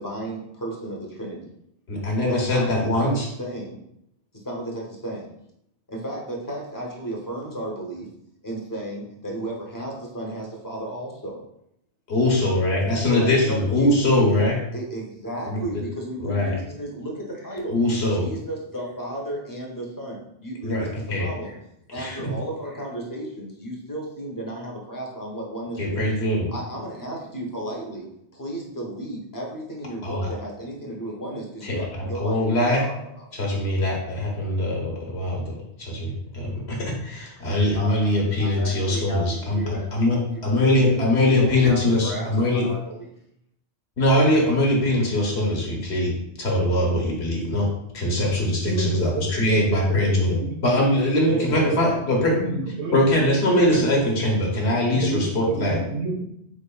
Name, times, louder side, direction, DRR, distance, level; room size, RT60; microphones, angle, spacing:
voice 1, 0.0-1.5 2.3-3.1 3.4-3.8 4.3-5.3 5.9-8.1 8.4-11.4 13.1-14.4 14.7-17.8 18.1-21.6 21.9-26.0 26.5-28.1 28.3-33.3 37.7-40.0 40.5-41.0 41.2-43.1, right 1 dB, 20° left, -2 dB, 0.7 m, -34 dB
voice 2, 1.9-3.2 12.1-14.6 15.5-15.6 16.2-16.5 17.7-18.3 20.6-21.3 21.9-22.2 25.8-26.5 30.0-30.3 31.6-32.8 33.3-40.2 40.4-42.6 44.0-47.7 47.9-52.3 52.9-55.8, left 1 dB, 75° left, -1 dB, 1.2 m, -22 dB
voice 3, 48.6-50.6 51.3-51.9 52.3-53.0 53.5-53.8 54.9-56.2, right 3 dB, 85° right, 1 dB, 1.0 m, -30 dB
3.8 x 3.5 x 2.2 m, 0.76 s
omnidirectional pair, 1.1 m